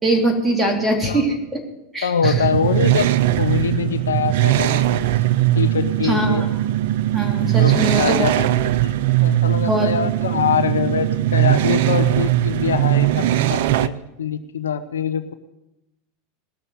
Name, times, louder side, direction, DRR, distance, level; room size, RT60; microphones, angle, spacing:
voice 1, 0.0-1.6 1.9-2.5 6.0-6.7 7.1-8.3 9.6-9.9, right 2 dB, 10° right, 2 dB, 3.5 m, -22 dB
voice 2, 2.0-3.1 3.4-5.1 5.5-6.5 7.5-8.5 8.8-8.9 9.2-15.3, left 7 dB, 90° left, 10 dB, 0.9 m, -24 dB
sound 1, 2.2-13.9, right 14 dB, 70° right, 0.6 m, -19 dB
18.5 x 6.8 x 8.9 m, 0.92 s
hypercardioid pair, 95°, 0 cm